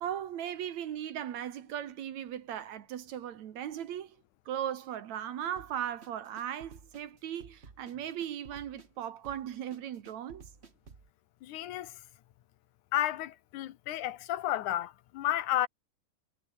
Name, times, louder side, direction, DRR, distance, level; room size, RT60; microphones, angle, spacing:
voice 1, 0.0-4.2 4.5-10.5, right 10 dB, 65° right, 2.6 m, -37 dB
sound 1, 5.6-11.1, right 5 dB, 30° right, 1.2 m, -54 dB
voice 2, 11.4-12.0 12.9-15.7, left 13 dB, 80° left, 2.5 m, -32 dB
omnidirectional pair, 3.5 m